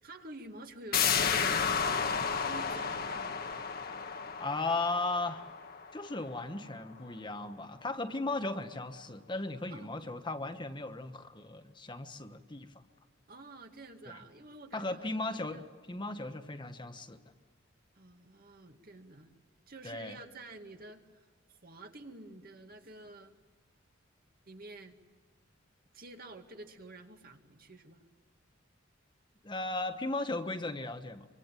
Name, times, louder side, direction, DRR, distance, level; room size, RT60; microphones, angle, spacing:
voice 1, 0.0-3.4 9.7-9.9 13.3-15.6 16.2-16.3 18.0-19.3 19.7-21.2 21.5-23.4 24.4-25.0 25.9-28.0, right 2 dB, 45° right, 4 dB, 2.2 m, -50 dB
sound 1, 0.9-6.4 6.8-6.9, left 6 dB, 50° left, 1.5 m, -32 dB
voice 2, 4.4-5.5 5.9-12.8 14.1-14.2 14.7-17.2 19.8-20.2 29.4-31.3, left 2 dB, 25° left, 6 dB, 1.3 m, -36 dB
26.0 x 24.5 x 9.1 m, 1.5 s
head